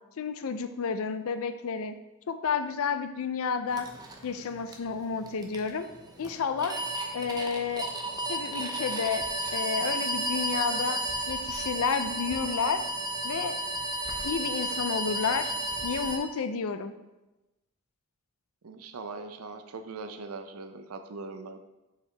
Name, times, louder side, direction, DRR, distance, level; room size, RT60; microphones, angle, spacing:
voice 1, 0.2-1.9 2.3-3.9 4.2-5.9 6.2-6.8 7.1-7.9 8.3-9.2 9.5-12.8 13.2-13.6 14.2-15.5 15.8-16.9, left 5 dB, 65° left, 10 dB, 0.4 m, -31 dB
sound 1, 3.7-16.2, right 1 dB, 20° right, 0.7 m, -33 dB
voice 2, 18.6-21.6, right 4 dB, 75° right, 8 dB, 0.5 m, -41 dB
6.9 x 4.7 x 3.3 m, 1.0 s
head